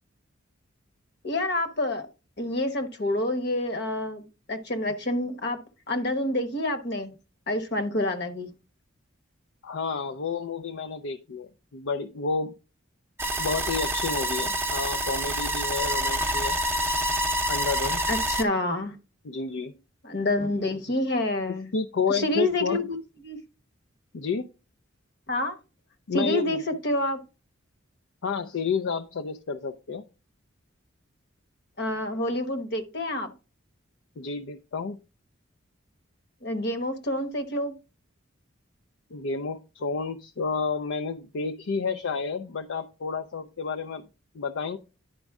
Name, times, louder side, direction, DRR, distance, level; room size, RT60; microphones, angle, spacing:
voice 1, 1.2-2.1 2.4-4.2 4.5-5.6 5.9-7.1 7.5-8.5 18.1-19.0 20.0-21.7 22.1-22.8 23.2-23.4 25.3-25.6 26.1-27.2 31.8-33.3 36.4-37.7, left 1 dB, 55° left, 1.1 m, -28 dB
voice 2, 9.6-12.5 13.4-16.6 17.5-18.0 19.2-19.7 21.7-22.8 24.1-24.5 26.1-26.6 28.2-30.0 34.2-35.0 39.1-44.0 44.3-44.8, left 4 dB, 70° left, 0.5 m, -30 dB
sound 1, 13.2-18.4, equal, 10° right, 0.7 m, -27 dB
10.0 x 5.2 x 3.5 m
head